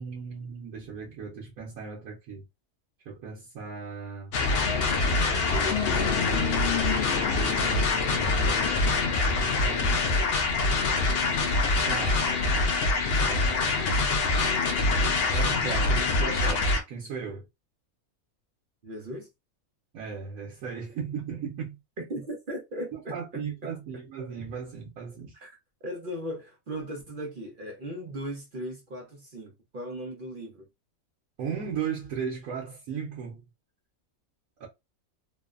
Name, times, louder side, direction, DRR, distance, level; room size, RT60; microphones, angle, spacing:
voice 1, 0.0-2.5 3.1-4.3 5.5-6.9 7.4-10.0 11.9-12.3 13.2-14.0 15.3-17.4 19.9-21.8 22.9-25.3 31.4-33.4 34.6-34.7, right 6 dB, 85° right, 1.2 m, -37 dB
sound 1, 4.3-16.8, left 3 dB, 65° left, 0.6 m, -24 dB
voice 2, 18.8-19.3 22.0-23.7 25.4-25.6 25.8-30.7, equal, 50° right, 0.6 m, -37 dB
3.0 x 2.0 x 2.3 m
omnidirectional pair, 1.5 m